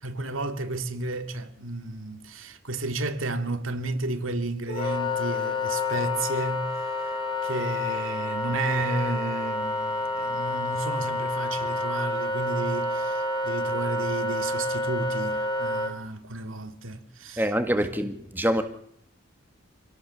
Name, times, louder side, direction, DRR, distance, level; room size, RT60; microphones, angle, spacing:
voice 1, 0.0-7.2 7.4-17.4 17.8-17.9, right 2 dB, 85° right, 2.4 m, -32 dB
Wind instrument woodwind instrument, 4.7-15.9, left 2 dB, 25° left, 2.9 m, -29 dB
voice 2, 17.4-18.6, equal, 10° right, 1.8 m, -25 dB
27.5 x 17.5 x 7.2 m
head